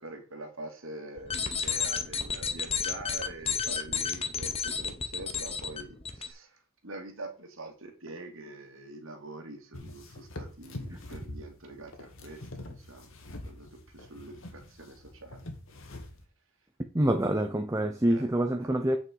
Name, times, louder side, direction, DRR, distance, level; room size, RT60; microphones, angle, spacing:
voice 1, 0.0-13.1 13.4-15.4 18.1-18.3 18.6-18.7, right 2 dB, 65° right, 2.5 m, -45 dB
sound 1, 1.2-6.3, left 6 dB, 30° left, 1.0 m, -32 dB
sound 2, 9.7-16.2, left 1 dB, 70° left, 1.9 m, -44 dB
voice 2, 16.9-19.0, right 1 dB, 15° right, 0.7 m, -26 dB
8.5 x 6.3 x 4.7 m
head